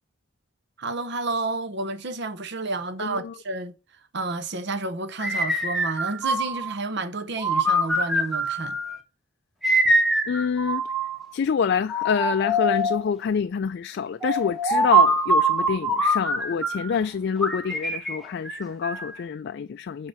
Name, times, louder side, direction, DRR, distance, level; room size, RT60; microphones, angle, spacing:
voice 1, 0.8-3.7 4.1-8.8, right 3 dB, 55° right, 0.8 m, -30 dB
voice 2, 3.0-3.3 10.3-10.9 11.3-20.1, left 6 dB, 55° left, 0.3 m, -26 dB
sound 1, 5.2-6.8 7.4-9.0 9.6-11.2 11.9-13.1 14.2-17.0 17.4-19.2, right 1 dB, ahead, 1.2 m, -24 dB
8.7 x 3.7 x 5.3 m
head